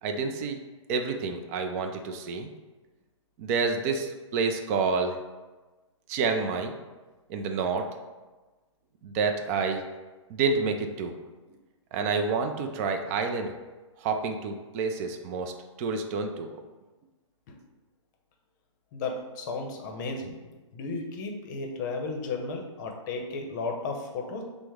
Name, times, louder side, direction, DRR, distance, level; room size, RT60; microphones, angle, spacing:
voice 1, 0.0-0.6 0.9-2.5 3.4-5.2 6.1-6.7 7.3-7.9 9.0-9.8 10.3-11.2 11.9-13.5 14.0-15.5 15.8-16.6, right 4 dB, 30° right, 5 dB, 0.4 m, -28 dB
voice 2, 18.9-20.4 20.7-24.4, left 3 dB, 40° left, 2 dB, 0.7 m, -34 dB
6.2 x 2.1 x 3.5 m, 1.2 s
hypercardioid pair, 140°, 16 cm